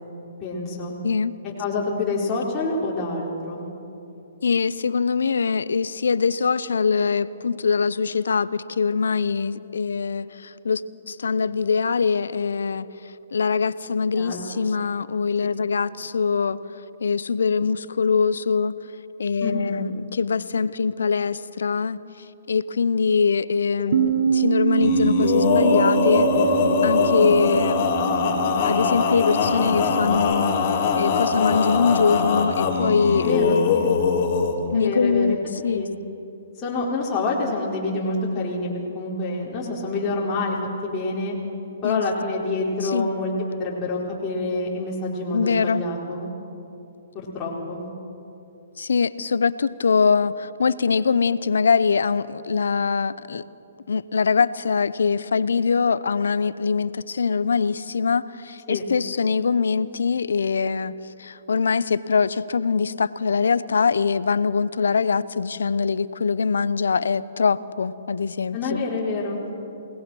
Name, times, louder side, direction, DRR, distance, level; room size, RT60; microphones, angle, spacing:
voice 1, 0.4-0.9 1.6-3.7 14.2-14.6 15.4-15.5 19.4-19.8 23.8-23.9 33.2-33.9 34.7-35.4 35.7-35.9 36.6-40.6 40.8-41.3 41.8-43.3 43.6-46.3 47.1-47.8 58.7-58.8 68.5-69.4, left 3 dB, 20° left, -6 dB, 4.3 m, -27 dB
voice 2, 1.0-1.3 4.4-10.8 11.1-12.9 13.3-16.6 17.0-18.8 19.2-22.0 22.5-26.3 26.8-27.8 28.6-30.5 31.0-33.6 34.7-35.4 35.6-35.8 41.8-42.0 42.8-43.1 45.3-45.8 48.8-53.4 53.9-60.9 61.2-68.8, left 5 dB, 80° left, 17 dB, 0.8 m, -23 dB
Bass guitar, 23.9-30.2, right 9 dB, 60° right, 2.0 m, -25 dB
Male singing, 24.8-34.6, left 5 dB, 40° left, 4.0 m, -22 dB
29.0 x 19.0 x 6.3 m, 2.8 s
hypercardioid pair, 135°, 0 cm